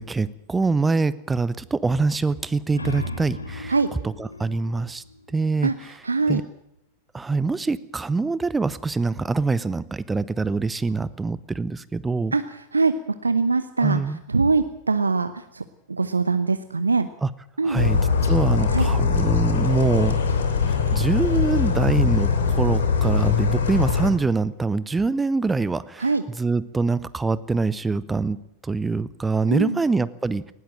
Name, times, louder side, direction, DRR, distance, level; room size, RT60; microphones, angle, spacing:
voice 1, 0.0-3.7 4.0-5.0 5.3-5.7 6.3-6.4 7.1-12.3 13.8-14.2 17.2-17.3 17.6-18.0 18.3-20.2 20.7-26.1 26.4-30.5, right 3 dB, 10° right, 18 dB, 0.8 m, -24 dB
sound 1, 2.5-5.9, left 2 dB, 80° left, 2.1 m, -36 dB
voice 2, 6.0-6.4 12.3-12.9 13.2-15.6 15.9-17.1 17.6-17.8 18.7-18.9 26.0-26.2 29.5-29.8, right 4 dB, 80° right, 11 dB, 0.9 m, -23 dB
sound 2, 17.8-24.1, left 5 dB, 65° left, 3.1 m, -21 dB
19.5 x 17.5 x 7.6 m, 0.78 s
figure-of-eight pair, 90°, 0 cm